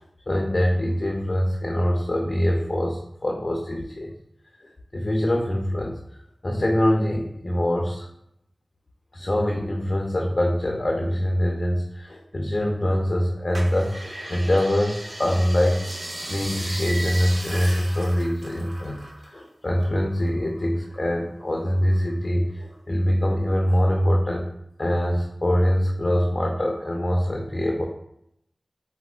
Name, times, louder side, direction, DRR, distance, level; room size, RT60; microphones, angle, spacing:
voice 1, 0.3-4.1 4.6-6.0 6.4-8.1 9.1-15.8 16.3-24.5 24.8-27.8, equal, 45° left, 1 dB, 0.4 m, -24 dB
sound 1, 13.5-19.4 19.7-21.0 21.4-22.2 22.7-22.8, right 1 dB, 70° right, 0.9 m, -36 dB
3.9 x 2.2 x 2.3 m, 0.77 s
cardioid pair, 40°, 0 cm